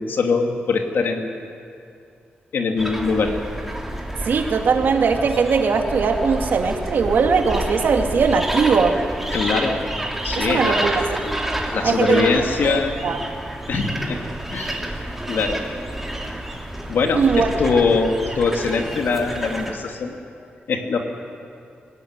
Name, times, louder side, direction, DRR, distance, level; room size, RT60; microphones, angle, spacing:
voice 1, 0.0-1.3 2.5-3.4 9.3-9.8 10.2-10.9 11.7-13.0 13.7-14.2 14.5-14.8 15.3-15.6 16.9-20.1 20.7-21.0, left 4 dB, 75° left, 3 dB, 2.6 m, -22 dB
sound 1, 2.8-19.7, right 1 dB, 5° right, 2.6 m, -29 dB
voice 2, 4.3-8.9 10.4-11.1 11.8-12.3 12.6-13.2 17.1-17.5, right 5 dB, 65° right, 3 dB, 2.3 m, -19 dB
25.5 x 17.0 x 9.7 m, 2.5 s
wide cardioid pair, 170°, 4 cm